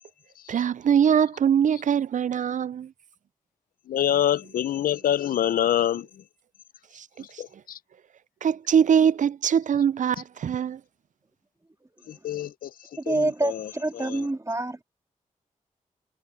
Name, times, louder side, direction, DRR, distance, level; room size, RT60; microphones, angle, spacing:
voice 1, 0.5-2.9 7.0-7.1 7.3-7.4 8.4-10.8, right 8 dB, 60° right, 0.5 m, -22 dB
voice 2, 3.9-6.1 7.4-7.8 12.1-12.7 13.1-13.2 13.4-13.6 14.0-14.2, left 11 dB, 85° left, 0.6 m, -25 dB
voice 3, 13.0-14.8, right 2 dB, 20° right, 2.1 m, -27 dB
supercardioid pair, 45°, 14 cm